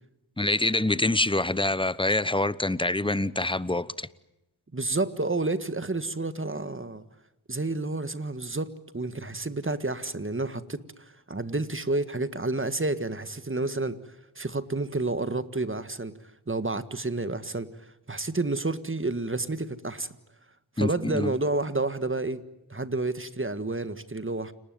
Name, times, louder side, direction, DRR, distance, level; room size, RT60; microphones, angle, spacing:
voice 1, 0.4-4.1 20.8-21.3, left 2 dB, 10° left, 1.0 m, -26 dB
voice 2, 4.7-7.0 7.5-10.8 11.3-14.0 14.4-16.1 16.5-17.7 18.1-20.1 20.8-22.4 22.7-24.5, right 2 dB, 25° right, 1.7 m, -30 dB
29.5 x 19.5 x 9.3 m
cardioid pair, 60°, 48 cm